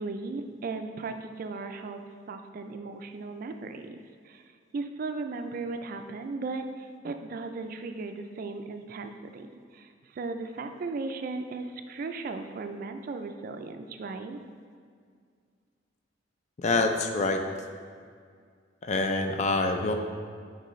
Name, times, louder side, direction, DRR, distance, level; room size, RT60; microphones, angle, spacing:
voice 1, 0.0-2.0 2.3-4.0 4.2-4.4 4.7-9.5 9.7-14.4, right 3 dB, 50° right, 7 dB, 0.3 m, -36 dB
voice 2, 16.6-17.4 18.8-19.9, left 3 dB, 35° left, 5 dB, 0.4 m, -26 dB
6.6 x 4.7 x 3.1 m, 2.1 s
head